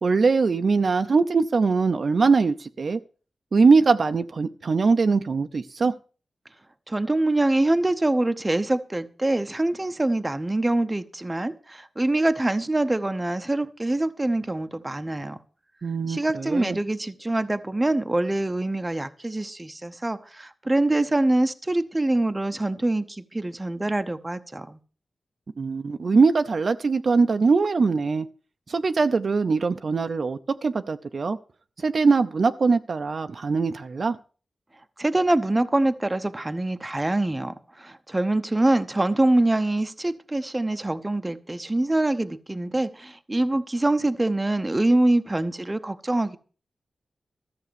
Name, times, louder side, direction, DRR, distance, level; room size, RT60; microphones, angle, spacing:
voice 1, 0.0-3.0 3.5-5.9 15.8-16.8 25.6-28.3 28.7-31.4 31.8-34.2, right 4 dB, 55° right, 0.6 m, -22 dB
voice 2, 6.9-15.4 16.1-24.8 35.0-46.4, right 2 dB, 15° right, 0.8 m, -24 dB
14.0 x 7.0 x 6.9 m
wide cardioid pair, 125°, 0 cm